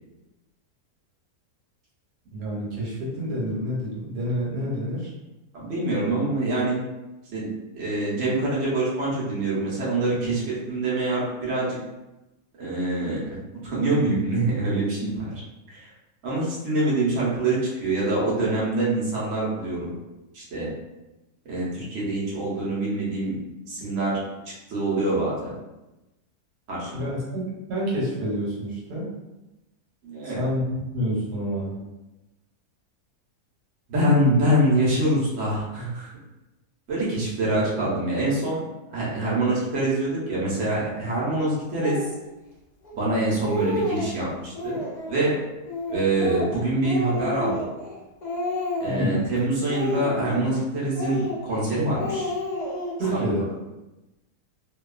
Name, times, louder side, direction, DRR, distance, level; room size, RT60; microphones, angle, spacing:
voice 1, 2.3-5.1 26.9-29.1 30.2-31.8 48.9-49.2 53.0-53.5, equal, 85° right, -5 dB, 1.4 m, -28 dB
voice 2, 5.5-6.8 7.3-11.8 12.6-13.4 13.6-15.2 15.7-15.9 16.2-19.9 20.3-20.7 21.4-23.4 23.7-24.1 24.7-25.6 26.7-27.1 30.0-30.4 33.9-36.1 36.9-38.6 38.9-42.0 43.0-44.8 45.1-45.3 45.9-47.5 48.8-52.3 53.1-53.3, right 2 dB, 55° right, -7 dB, 1.1 m, -25 dB
Speech, 41.8-42.1 42.8-42.9 43.2-44.1 44.5-45.1 45.7-47.9 48.2-49.2 49.6-50.6 50.9-51.6 51.9-53.1, left 1 dB, 75° left, 0.4 m, -30 dB
2.8 x 2.3 x 2.3 m, 1.0 s
omnidirectional pair, 1.7 m